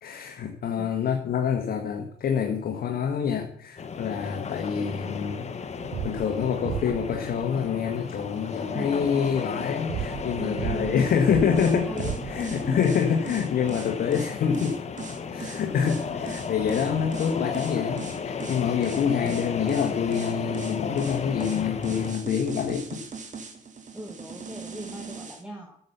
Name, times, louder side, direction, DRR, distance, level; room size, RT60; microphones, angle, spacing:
voice 1, 0.0-5.5 6.0-14.8 15.3-23.0, left 7 dB, 55° left, 3 dB, 1.4 m, -26 dB
voice 2, 0.8-1.2 8.7-9.1 10.4-13.1 19.2-19.7 23.9-25.8, right 1 dB, 5° right, 2 dB, 1.7 m, -39 dB
sound 1, 3.8-22.1, left 6 dB, 35° left, 1.2 m, -34 dB
sound 2, 5.8-16.2, right 10 dB, 60° right, 0.6 m, -38 dB
sound 3, 11.5-25.4, right 5 dB, 40° right, 2.1 m, -39 dB
10.5 x 6.8 x 7.1 m, 0.67 s
cardioid pair, 95°, 19 cm